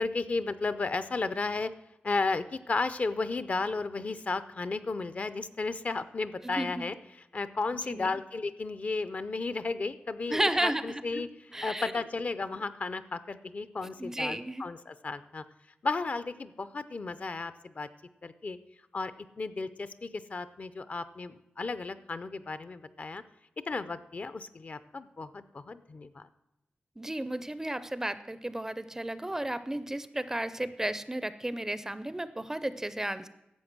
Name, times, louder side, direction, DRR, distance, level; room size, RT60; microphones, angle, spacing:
voice 1, 0.0-1.7 2.0-6.9 7.3-11.3 11.6-15.4 15.8-17.9 18.2-18.6 18.9-19.1 19.4-23.2 23.7-26.3, left 3 dB, 40° left, 13 dB, 0.5 m, -34 dB
voice 2, 6.4-6.8 7.9-8.1 10.3-11.2 11.5-11.9 14.0-14.6 27.0-33.3, right 1 dB, 15° right, 13 dB, 0.4 m, -33 dB
11.5 x 7.7 x 6.0 m, 0.91 s
wide cardioid pair, 160°, 4 cm